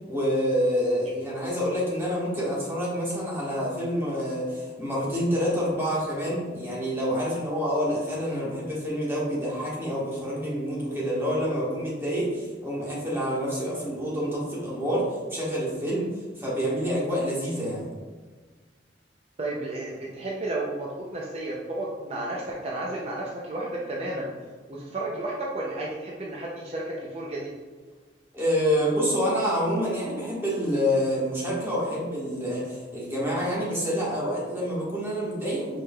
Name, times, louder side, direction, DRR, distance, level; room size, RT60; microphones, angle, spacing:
voice 1, 0.0-17.9 28.3-35.8, equal, 15° right, -6 dB, 1.4 m, -27 dB
voice 2, 19.4-24.3 24.7-27.5, right 2 dB, 35° right, -4 dB, 0.5 m, -32 dB
4.7 x 4.6 x 2.3 m, 1.4 s
head